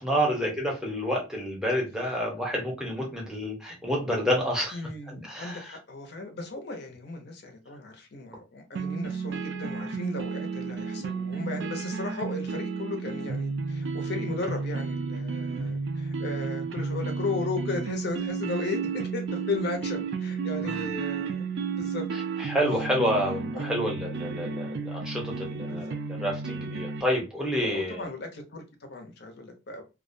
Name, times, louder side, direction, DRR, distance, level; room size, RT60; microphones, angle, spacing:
voice 1, 0.0-4.8 5.1-5.7 15.6-15.7 20.6-20.9 22.4-28.0, equal, 5° right, 0.7 m, -29 dB
voice 2, 4.7-21.4 21.8-22.1 22.4-22.6 23.5-23.8 25.6-26.0 27.6-29.8, left 3 dB, 50° left, 0.6 m, -36 dB
sound 1, 8.8-27.0, right 5 dB, 55° right, 0.3 m, -32 dB
2.3 x 2.1 x 2.5 m
head